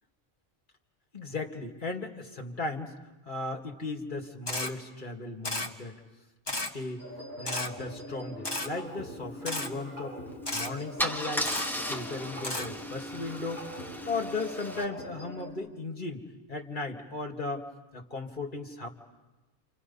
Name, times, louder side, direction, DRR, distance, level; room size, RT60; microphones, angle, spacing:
voice 1, 1.1-2.9 3.3-5.9 6.5-7.0 7.4-10.2 10.5-11.5 11.8-13.7 14.1-17.6 17.9-18.9, left 3 dB, 50° left, 1 dB, 2.4 m, -36 dB
Camera, 4.5-4.7 5.4-5.7 6.5-6.7 7.5-7.7 8.4-8.7 9.5-9.7 10.5-10.7 11.4-11.7 12.4-12.7, left 2 dB, 25° left, 1.4 m, -32 dB
sound 1, 7.0-15.5, equal, 65° right, 8.2 m, -42 dB
Car / Engine starting / Idling, 10.3-10.5 11.0-14.8, equal, ahead, 1.3 m, -36 dB
29.0 x 27.5 x 5.6 m, 1.1 s
omnidirectional pair, 1.1 m